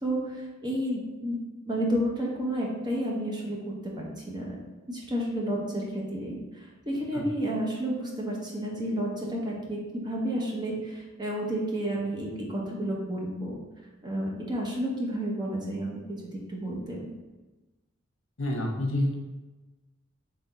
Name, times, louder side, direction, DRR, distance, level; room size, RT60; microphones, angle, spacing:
voice 1, 0.0-1.4 1.7-4.6 4.9-13.5 14.0-17.1, right 1 dB, 20° right, -3 dB, 0.9 m, -31 dB
voice 2, 18.4-19.1, left 1 dB, 75° left, 1 dB, 0.9 m, -28 dB
3.8 x 3.4 x 4.0 m, 1.2 s
head